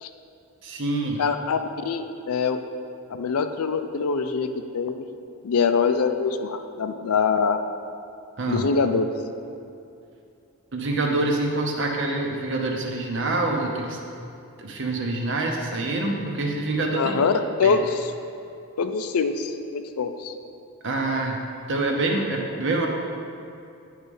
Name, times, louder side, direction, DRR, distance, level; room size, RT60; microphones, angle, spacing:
voice 1, 0.6-1.2 8.4-8.6 10.7-14.0 14.6-17.3 17.6-17.8 20.8-21.4 21.7-22.9, right 2 dB, 55° right, 1 dB, 0.9 m, -26 dB
voice 2, 1.2-2.6 3.1-4.5 4.7-5.0 5.4-7.6 8.5-9.1 16.9-18.1 18.8-20.3, left 5 dB, 80° left, 8 dB, 0.4 m, -24 dB
9.6 x 3.3 x 5.3 m, 2.6 s
head